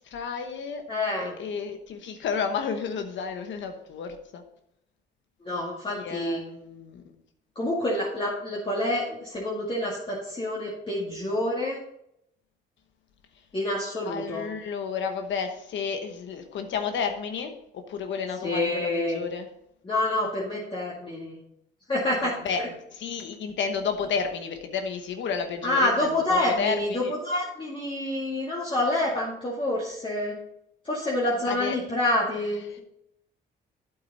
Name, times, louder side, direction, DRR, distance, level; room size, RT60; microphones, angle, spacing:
voice 1, 0.0-0.8 1.2-4.4 5.9-7.1 14.1-19.5 22.4-22.6 22.9-27.1 31.5-31.8 32.7-32.8, left 6 dB, 70° left, 6 dB, 1.1 m, -31 dB
voice 2, 0.9-1.3 5.4-6.4 7.6-11.8 13.5-14.4 18.4-19.2 19.8-21.4 21.9-22.7 25.6-30.3 30.8-32.6, left 1 dB, 25° left, -5 dB, 2.3 m, -27 dB
8.8 x 7.8 x 4.2 m, 0.78 s
cardioid pair, 90°, 20 cm